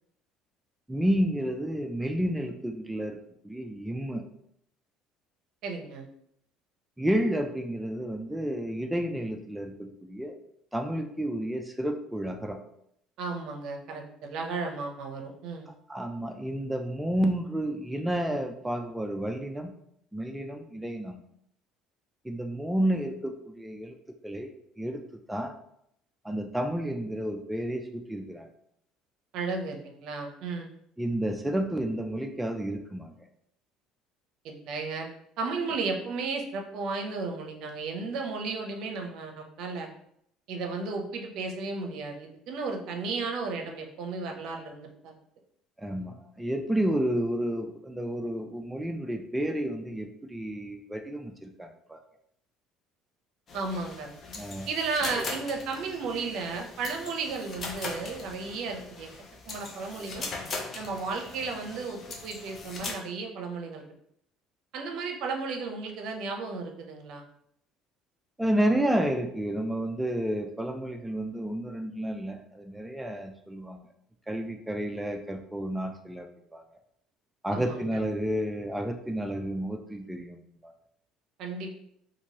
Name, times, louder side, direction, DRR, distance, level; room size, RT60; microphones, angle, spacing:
voice 1, 0.9-3.2 3.4-4.2 7.0-10.4 10.7-12.6 15.9-19.7 20.1-21.2 22.2-23.9 24.2-24.5 24.8-25.0 25.3-25.5 26.2-28.5 31.0-33.2 45.8-52.0 54.4-54.7 55.1-55.2 68.4-73.8 74.3-76.3 76.5-76.6 77.4-80.7, right 1 dB, 5° right, 3 dB, 0.3 m, -31 dB
voice 2, 5.6-6.1 13.2-15.7 29.3-30.7 34.4-35.1 35.4-39.9 40.5-45.1 53.5-54.1 54.7-59.1 59.5-60.3 60.7-63.8 64.7-67.2 77.5-78.0 81.4-81.8, right 4 dB, 65° right, 3 dB, 0.5 m, -34 dB
sound 1, 53.5-62.9, left 3 dB, 40° left, 0.6 m, -40 dB
2.9 x 2.6 x 2.8 m, 0.72 s
supercardioid pair, 100°, 0 cm